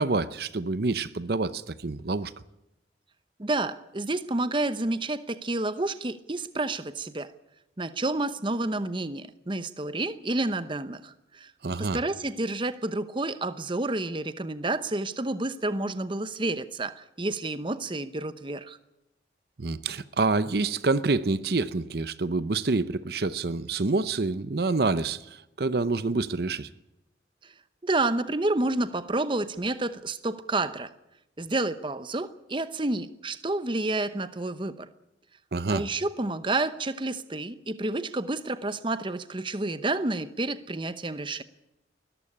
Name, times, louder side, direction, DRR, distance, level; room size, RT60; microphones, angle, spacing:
voice 1, 0.0-2.3 11.6-12.0 19.6-26.7 35.5-35.8, right 3 dB, 55° right, 0.7 m, -27 dB
voice 2, 3.4-7.3 7.8-11.5 11.8-18.8 27.4-27.5 27.8-30.9 31.4-34.9 35.7-41.4, right 2 dB, 25° right, 0.8 m, -29 dB
20.5 x 14.0 x 9.9 m
head